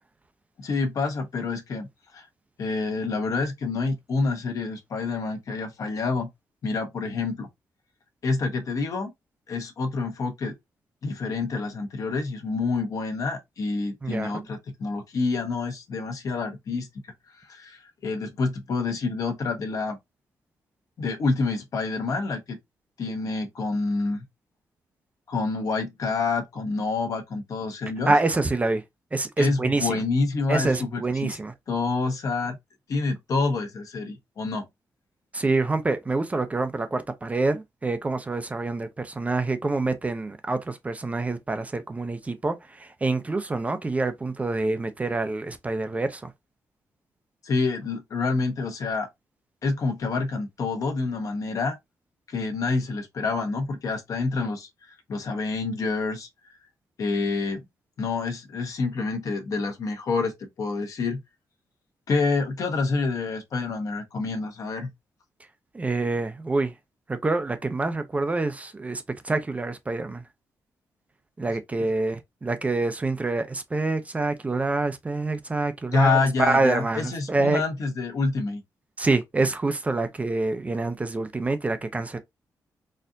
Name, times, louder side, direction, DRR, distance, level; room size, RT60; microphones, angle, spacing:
voice 1, 0.6-2.3 2.6-6.3 6.6-7.5 8.2-9.1 9.5-10.5 11.0-16.9 17.3-20.0 21.0-22.6 23.0-24.2 25.3-28.1 29.4-31.4 31.7-32.6 32.9-34.6 47.4-49.1 49.6-51.8 52.3-56.3 57.0-57.6 58.0-60.3 60.6-61.2 62.1-64.9 75.9-78.6, left 3 dB, 55° left, 1.0 m, -27 dB
voice 2, 14.0-14.4 28.1-28.8 29.1-30.0 30.5-31.5 35.3-46.3 65.7-66.7 67.1-70.2 71.4-77.6 79.0-82.2, right 3 dB, 20° right, 0.5 m, -26 dB
4.2 x 2.5 x 2.6 m
cardioid pair, 125°, 7 cm